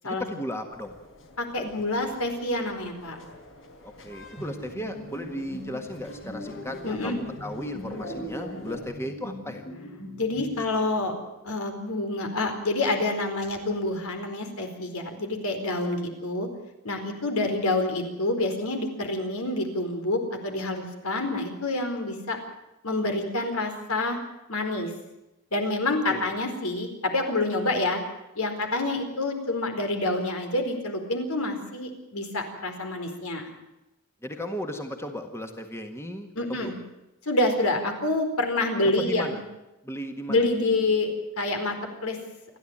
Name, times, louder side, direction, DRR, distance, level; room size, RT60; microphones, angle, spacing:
voice 1, 0.0-0.9 3.8-9.7 26.1-26.3 34.2-36.8 39.0-39.4 39.8-41.0, equal, 10° left, 5 dB, 1.7 m, -36 dB
sound 1, 0.7-8.8, left 1 dB, 60° left, 4.5 m, -43 dB
voice 2, 1.4-3.2 6.8-7.2 10.2-11.1 11.4-16.5 16.8-22.4 22.8-24.2 24.5-24.9 25.5-28.0 28.4-33.5 36.4-36.7 37.2-39.4 40.3-41.7 42.0-42.2, left 2 dB, 75° left, 5 dB, 4.6 m, -27 dB
sound 2, 4.4-11.1, left 1 dB, 45° left, 7.5 m, -41 dB
29.5 x 11.5 x 8.9 m, 0.96 s
head